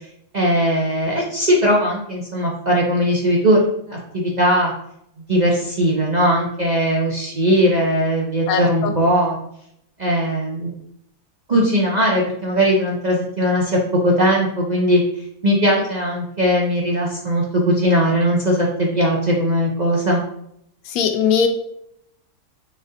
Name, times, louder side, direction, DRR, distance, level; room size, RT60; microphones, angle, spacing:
voice 1, 0.3-3.6 3.9-4.7 5.3-9.4 10.0-10.7 11.5-20.2, equal, 70° right, -3 dB, 0.4 m, -19 dB
voice 2, 8.5-8.9 20.9-21.5, left 7 dB, 70° left, 6 dB, 1.0 m, -19 dB
4.1 x 3.7 x 2.6 m, 0.73 s
omnidirectional pair, 1.7 m